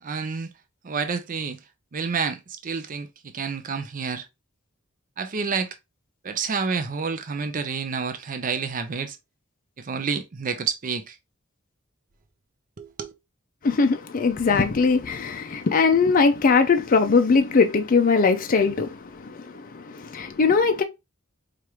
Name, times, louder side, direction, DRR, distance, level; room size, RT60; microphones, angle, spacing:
voice 1, 0.0-0.5 0.8-1.6 1.9-4.3 5.2-5.7 6.2-9.2 9.8-11.2 12.8-13.1, right 5 dB, 40° right, 0.5 m, -29 dB
voice 2, 13.6-20.8, left 4 dB, 40° left, 0.4 m, -21 dB
4.7 x 2.5 x 2.9 m
head